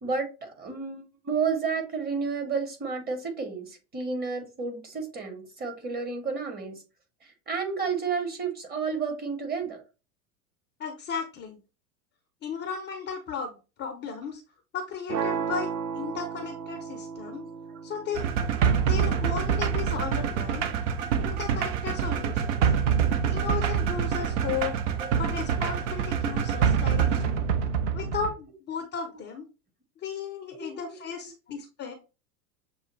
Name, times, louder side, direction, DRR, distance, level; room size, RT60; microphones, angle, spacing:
voice 1, 0.0-6.8 7.5-9.8 25.0-25.1 30.5-30.9, right 5 dB, 20° right, 5 dB, 1.3 m, -31 dB
voice 2, 10.8-11.6 12.4-14.4 14.7-17.4 17.8-18.3 18.9-20.7 21.2-22.7 23.3-24.8 25.2-27.4 27.9-29.5 30.0-31.9, left 6 dB, 25° left, 5 dB, 0.7 m, -35 dB
sound 1, 15.1-21.1, right 6 dB, 85° right, 0.6 m, -36 dB
sound 2, 18.1-28.3, right 7 dB, 50° right, 0.8 m, -26 dB
6.7 x 2.3 x 3.2 m, 0.31 s
figure-of-eight pair, 85°, 46 cm